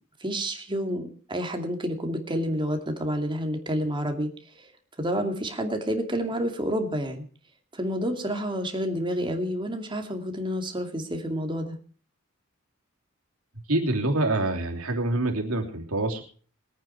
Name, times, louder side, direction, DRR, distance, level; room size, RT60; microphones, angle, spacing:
voice 1, 0.2-4.3 4.6-4.7 5.0-7.2 7.7-11.8, equal, 25° right, 4 dB, 2.4 m, -29 dB
voice 2, 13.7-16.2, right 2 dB, 80° right, 2 dB, 3.2 m, -26 dB
22.0 x 9.1 x 4.5 m, 0.43 s
head